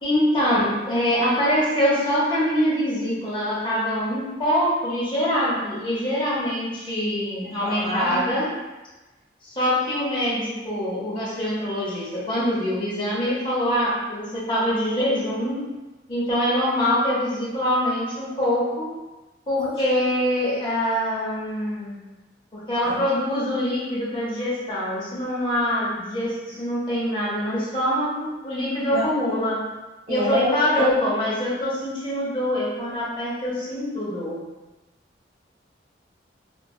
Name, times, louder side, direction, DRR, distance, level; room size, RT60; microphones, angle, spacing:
voice 1, 0.0-8.5 9.4-15.7 16.1-18.9 19.5-22.0 22.5-29.6 30.1-34.4, equal, 25° left, -8 dB, 0.8 m, -24 dB
voice 2, 7.6-8.2 19.6-19.7 22.8-22.9 28.9-29.1 30.1-31.0, equal, 35° right, -7 dB, 0.7 m, -26 dB
2.6 x 2.3 x 2.3 m, 1.1 s
head